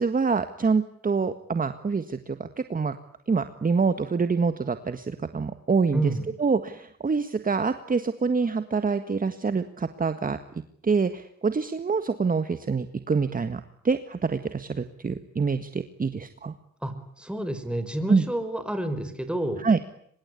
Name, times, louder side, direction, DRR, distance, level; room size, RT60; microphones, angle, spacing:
voice 1, 0.0-3.0 3.3-6.1 6.4-10.4 10.8-16.5 18.1-18.2 19.6-19.8, right 5 dB, 30° right, 9 dB, 1.7 m, -26 dB
voice 2, 5.9-6.3 16.8-19.6, right 1 dB, 5° right, 9 dB, 5.2 m, -29 dB
25.5 x 21.5 x 9.9 m, 0.68 s
cardioid pair, 90°, 30 cm